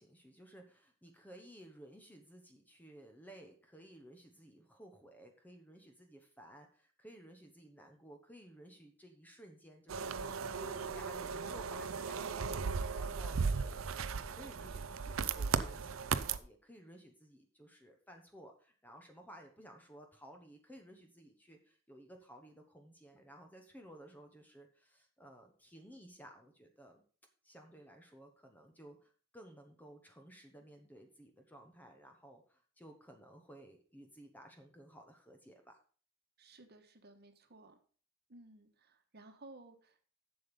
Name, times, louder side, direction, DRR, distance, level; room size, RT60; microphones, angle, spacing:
voice 1, 0.0-13.9 14.1-27.0 27.4-35.8, right 1 dB, 10° left, 4 dB, 1.0 m, -56 dB
sound 1, 9.9-16.4, right 5 dB, 75° right, 0.5 m, -36 dB
voice 2, 36.4-37.8 38.3-40.0, right 2 dB, 50° right, 6 dB, 1.3 m, -57 dB
7.6 x 7.0 x 5.3 m, 0.42 s
head